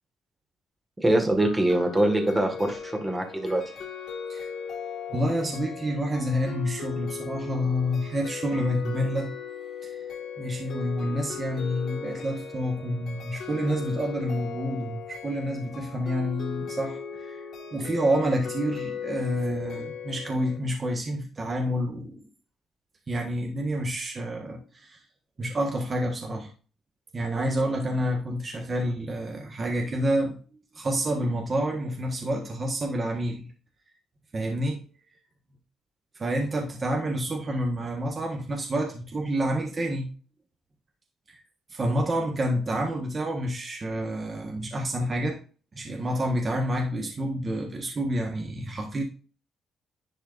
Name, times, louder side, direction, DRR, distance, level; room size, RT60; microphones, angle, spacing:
voice 1, 1.0-3.6, right 1 dB, 15° right, 1.9 m, -23 dB
sound 1, 1.4-20.6, left 6 dB, 60° left, 2.1 m, -37 dB
voice 2, 5.1-9.3 9.8-10.1 10.4-17.4 17.7-22.2 23.1-25.0 25.4-26.5 27.1-30.4 30.7-33.5 34.3-34.8 36.1-40.1 41.3-41.4 41.7-45.4 45.7-49.0, equal, 35° right, 1.5 m, -28 dB
10.5 x 4.3 x 2.6 m
cardioid pair, 90°, 0 cm